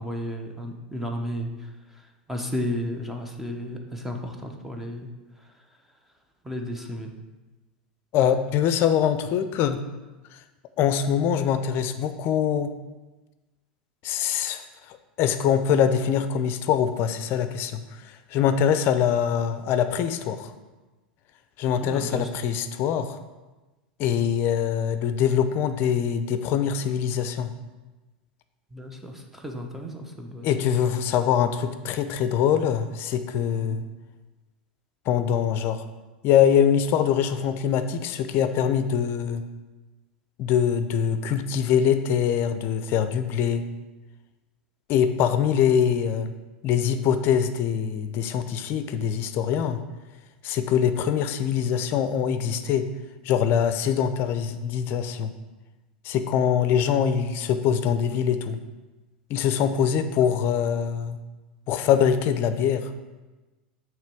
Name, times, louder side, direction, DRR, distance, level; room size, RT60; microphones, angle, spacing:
voice 1, 0.0-5.8 6.4-7.1 21.7-22.3 28.7-30.8 33.6-33.8, equal, 5° right, 2 dB, 0.9 m, -34 dB
voice 2, 8.1-9.8 10.8-12.7 14.0-20.5 21.6-23.2 24.0-27.5 30.4-33.8 35.1-35.8 36.2-39.4 40.4-43.7 44.9-46.3 46.6-49.8 50.4-52.9 53.2-55.3 56.0-58.6 59.3-61.2 61.7-62.9, left 8 dB, 45° left, 10 dB, 0.6 m, -23 dB
7.3 x 3.1 x 6.1 m, 1.2 s
hypercardioid pair, 100°, 5 cm